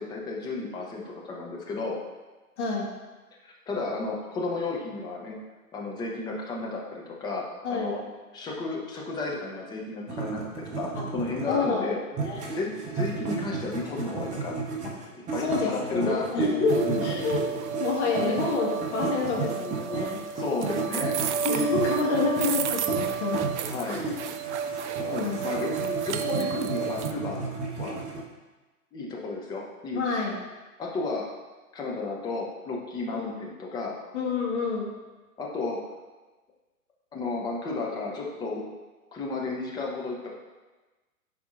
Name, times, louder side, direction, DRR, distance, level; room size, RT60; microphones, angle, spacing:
voice 1, 0.0-2.0 3.4-5.4 5.7-8.0 8.3-12.0 12.4-14.6 15.3-16.5 16.8-17.0 18.2-18.4 20.4-21.2 21.5-21.8 23.7-24.1 25.0-27.5 27.8-28.0 28.9-30.0 30.8-31.2 31.7-34.0 35.4-35.8 37.1-38.6 39.1-40.3, left 3 dB, 10° left, -2 dB, 0.5 m, -33 dB
voice 2, 2.6-2.9 7.6-8.1 11.5-11.9 12.2-12.5 14.8-15.1 15.4-17.4 17.8-20.2 21.4-23.5 23.9-24.1 25.2-25.4 25.8-25.9 26.3-26.5 29.9-30.4 33.1-33.4 34.1-34.9, left 4 dB, 50° left, -2 dB, 1.7 m, -28 dB
sound 1, 10.1-11.7 12.1-18.5 18.8-28.2, right 4 dB, 15° right, 0.9 m, -34 dB
sound 2, 16.7-27.1, right 7 dB, 50° right, 0.5 m, -31 dB
10.5 x 4.3 x 2.5 m, 1.2 s
hypercardioid pair, 120°, 45 cm